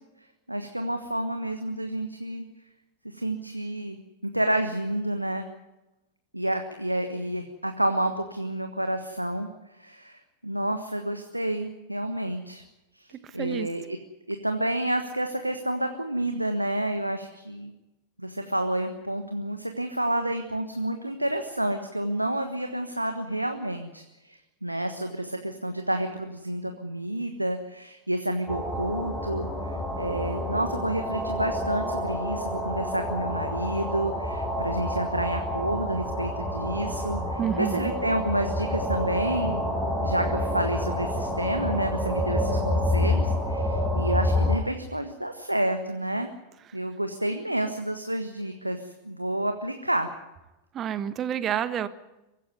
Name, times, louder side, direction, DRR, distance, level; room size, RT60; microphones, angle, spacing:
voice 1, 0.5-2.5 3.0-4.0 4.3-5.5 6.3-9.5 9.8-12.6 12.9-13.9 14.3-17.7 18.2-39.6 40.0-46.3 46.7-50.1, right 1 dB, 85° right, 7 dB, 1.3 m, -29 dB
voice 2, 13.2-13.7 37.4-37.9 50.7-51.9, right 9 dB, 30° right, 13 dB, 1.4 m, -29 dB
sound 1, 28.5-44.6, left 1 dB, 5° left, 7.3 m, -28 dB
23.5 x 15.0 x 9.5 m, 0.98 s
figure-of-eight pair, 90°, 0 cm